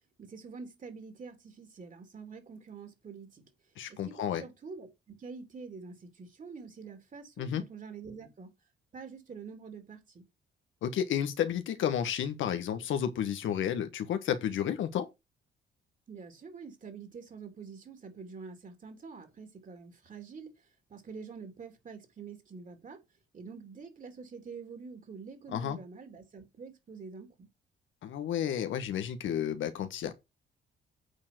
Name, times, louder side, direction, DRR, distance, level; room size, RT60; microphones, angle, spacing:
voice 1, 0.2-3.4 3.9-8.5 8.9-10.2 16.1-23.0 23.3-27.5, right 5 dB, 40° right, 3.4 m, -46 dB
voice 2, 3.8-4.4 7.4-7.6 10.8-15.1 25.5-25.8 28.0-30.1, left 9 dB, 75° left, 1.4 m, -31 dB
8.5 x 4.7 x 6.2 m
cardioid pair, 90°, 20 cm